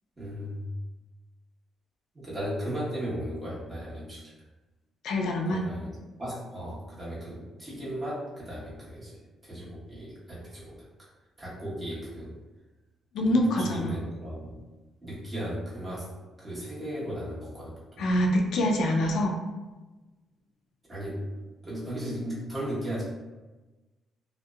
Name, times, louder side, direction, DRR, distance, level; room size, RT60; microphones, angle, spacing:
voice 1, 0.2-0.7 2.1-4.3 5.5-9.2 9.4-10.9 11.4-12.4 13.2-14.5 15.0-16.1 16.4-18.1 20.9-21.3 21.6-23.0, equal, 25° right, -8 dB, 1.1 m, -36 dB
voice 2, 5.0-5.6 13.1-13.9 18.0-19.3, left 1 dB, 75° left, 1 dB, 0.3 m, -25 dB
2.7 x 2.0 x 2.3 m, 1.2 s
cardioid pair, 90°, 0 cm